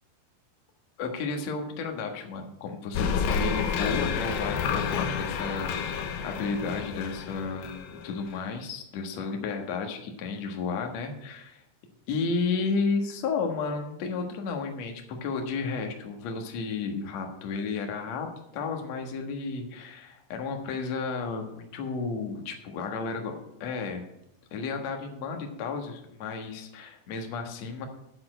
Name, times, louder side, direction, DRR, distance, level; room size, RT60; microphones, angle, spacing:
voice 1, 1.0-11.6 12.1-18.3 18.5-23.3 23.6-24.0 24.5-27.9, left 4 dB, 55° left, 4 dB, 2.2 m, -32 dB
sound 1, 3.0-8.4, left 6 dB, 75° left, 2.7 m, -30 dB
8.6 x 7.2 x 8.8 m, 0.82 s
omnidirectional pair, 4.6 m